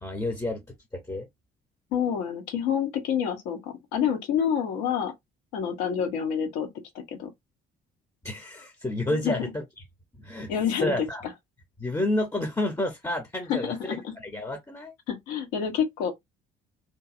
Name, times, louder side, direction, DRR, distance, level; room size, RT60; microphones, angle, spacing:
voice 1, 0.0-1.3 8.2-9.6 10.2-10.5 10.8-11.2 11.8-14.9, left 1 dB, 10° left, 0.7 m, -30 dB
voice 2, 1.9-5.1 5.5-6.7 6.9-7.3 9.1-9.4 10.5-11.1 13.5-14.1 15.1-16.1, left 8 dB, 70° left, 0.9 m, -28 dB
2.8 x 2.6 x 2.5 m
hypercardioid pair, 50°, 30 cm